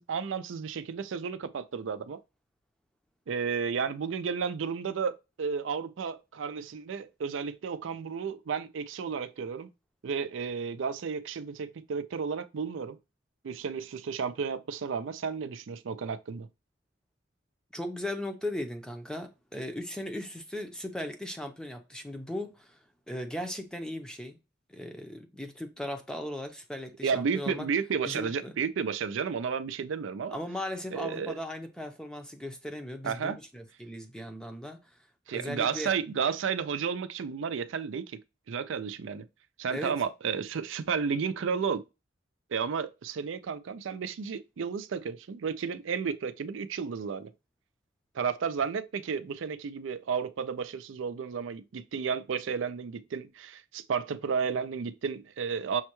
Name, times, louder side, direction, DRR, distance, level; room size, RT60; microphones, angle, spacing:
voice 1, 0.0-2.2 3.3-9.7 10.0-13.0 13.4-16.5 27.0-30.4 30.9-31.4 33.0-33.4 35.3-38.2 38.5-39.3 39.6-41.8 42.5-47.3 48.1-55.8, right 6 dB, 80° right, 0.4 m, -32 dB
voice 2, 17.7-22.8 23.1-24.4 24.7-27.7 28.0-28.5 30.3-34.9 35.3-35.9 39.7-40.0, left 1 dB, 5° left, 0.6 m, -37 dB
6.3 x 2.2 x 2.9 m
head